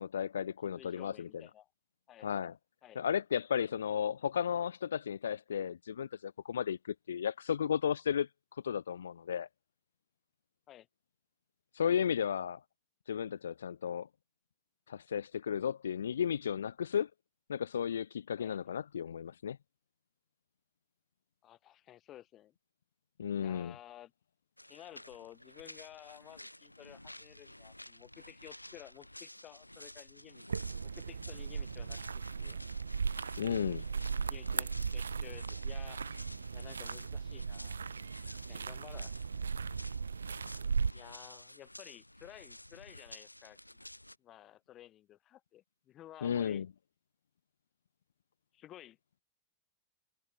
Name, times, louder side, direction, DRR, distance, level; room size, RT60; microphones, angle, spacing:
voice 1, 0.0-1.3 2.2-2.5 3.0-9.5 11.7-12.6 13.1-14.1 14.9-17.1 17.5-19.6 23.2-23.7 33.4-33.8 46.2-46.7, left 8 dB, 65° left, 0.4 m, -34 dB
voice 2, 0.8-1.7 2.1-2.3 2.8-3.0 10.7-10.9 18.4-18.6 21.4-22.6 23.4-24.1 24.7-30.4 30.8-32.6 34.2-36.2 36.5-37.8 38.5-39.1 40.9-43.6 44.2-46.7 48.5-49.0, left 13 dB, 30° left, 7.0 m, -54 dB
sound 1, 24.6-44.2, left 1 dB, 85° left, 4.8 m, -52 dB
sound 2, 30.5-40.9, right 5 dB, 75° right, 0.8 m, -37 dB
figure-of-eight pair, 90°, 0 cm